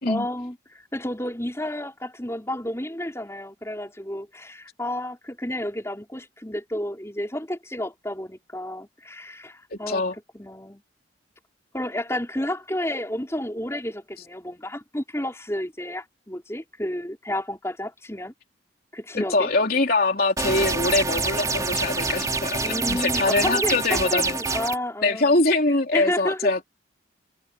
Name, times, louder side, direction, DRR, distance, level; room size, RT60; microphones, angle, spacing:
voice 1, 0.1-10.0 10.3-10.8 11.7-18.3 18.9-19.5 22.6-25.3 25.9-26.5, left 1 dB, 15° left, 5.2 m, -31 dB
voice 2, 9.7-10.1 19.1-24.4 25.0-26.7, left 2 dB, 50° left, 3.5 m, -23 dB
sound 1, 20.4-24.8, right 3 dB, 20° right, 3.3 m, -26 dB
head